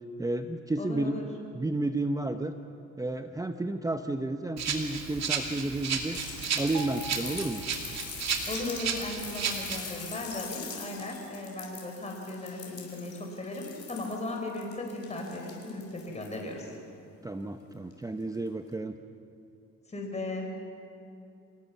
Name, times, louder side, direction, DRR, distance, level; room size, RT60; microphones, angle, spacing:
voice 1, 0.2-1.2 1.5-2.5 3.0-6.2 6.6-7.6 17.2-18.9, right 2 dB, 10° right, 7 dB, 0.8 m, -31 dB
voice 2, 0.8-1.3 8.5-16.7 19.9-20.4, left 2 dB, 20° left, 1 dB, 4.4 m, -37 dB
Rattle (instrument), 4.6-9.8, right 6 dB, 60° right, 2.5 m, -33 dB
sound 1, 6.1-16.5 17.9-18.0, left 6 dB, 55° left, 4.9 m, -43 dB
sound 2, 6.7-8.4 8.6-8.9, right 1 dB, 85° right, 4.1 m, -44 dB
26.5 x 17.5 x 7.2 m, 2.7 s
cardioid pair, 90°, 30 cm